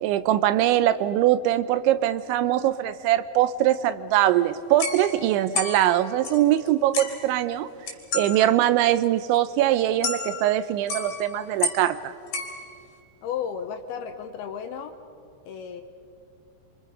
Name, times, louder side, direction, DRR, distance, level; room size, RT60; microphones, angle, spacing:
voice 1, 0.0-7.7 8.1-12.1, right 13 dB, 85° right, 13 dB, 3.1 m, -22 dB
sound 1, 4.1-4.3 4.8-6.7 6.9-7.3 7.9-8.4 8.6-8.7 9.0-9.1 9.3-9.4 10.0-10.6 10.9-12.0 12.3-13.0, left 4 dB, 50° left, 3.8 m, -32 dB
voice 2, 13.2-15.0 15.5-15.8, left 7 dB, 75° left, 6 dB, 2.5 m, -33 dB
29.5 x 25.0 x 5.4 m, 2.5 s
omnidirectional pair, 5.3 m